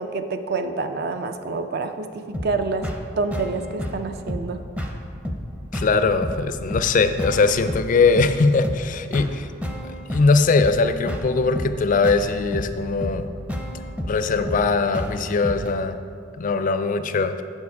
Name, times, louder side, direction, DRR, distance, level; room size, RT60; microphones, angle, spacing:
voice 1, 0.0-2.9 3.2-4.6, right 3 dB, 55° right, 8 dB, 0.5 m, -27 dB
sound 1, 2.3-15.7, equal, 5° right, 0.6 m, -31 dB
voice 2, 5.7-9.5 10.1-13.3 14.0-16.0 16.4-17.4, left 4 dB, 40° left, 10 dB, 0.4 m, -20 dB
7.2 x 6.7 x 4.7 m, 2.3 s
head